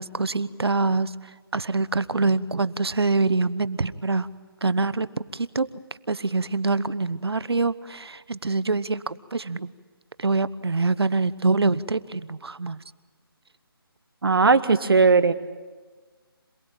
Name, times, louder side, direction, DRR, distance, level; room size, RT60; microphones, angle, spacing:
voice 1, 0.0-4.3 4.6-5.7 6.1-9.7 10.2-12.8, right 3 dB, 90° right, 16 dB, 1.1 m, -25 dB
voice 2, 14.2-15.3, right 4 dB, 70° right, 11 dB, 1.6 m, -18 dB
27.0 x 19.5 x 8.9 m, 1.4 s
figure-of-eight pair, 165°, 13 cm